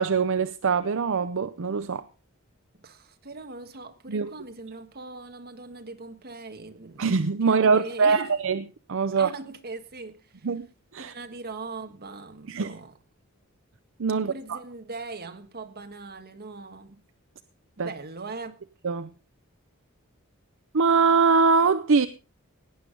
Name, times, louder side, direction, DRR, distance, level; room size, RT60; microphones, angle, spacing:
voice 1, 0.0-2.0 4.1-4.3 7.0-8.6 8.9-9.3 10.4-10.7 10.9-11.1 12.5-12.7 14.0-14.6 17.8-17.9 18.8-19.1 20.7-22.1, right 5 dB, 65° right, 0.6 m, -23 dB
voice 2, 2.7-7.0 7.4-8.3 9.2-10.5 11.0-13.0 14.1-17.0 17.8-18.6, right 3 dB, 50° right, 1.6 m, -40 dB
17.5 x 10.0 x 3.8 m
head